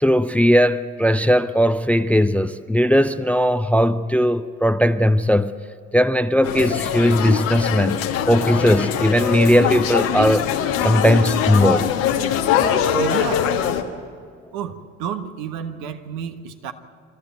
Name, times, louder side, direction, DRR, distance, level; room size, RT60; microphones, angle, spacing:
voice 1, 0.0-5.5 5.9-10.5 10.8-11.9, equal, 5° left, 0.6 m, -18 dB
sound 1, 6.4-13.8, left 8 dB, 75° left, 1.5 m, -22 dB
voice 2, 12.9-13.5 14.5-16.7, right 8 dB, 65° right, 1.4 m, -31 dB
28.0 x 13.5 x 9.2 m
figure-of-eight pair, 55°, 40 cm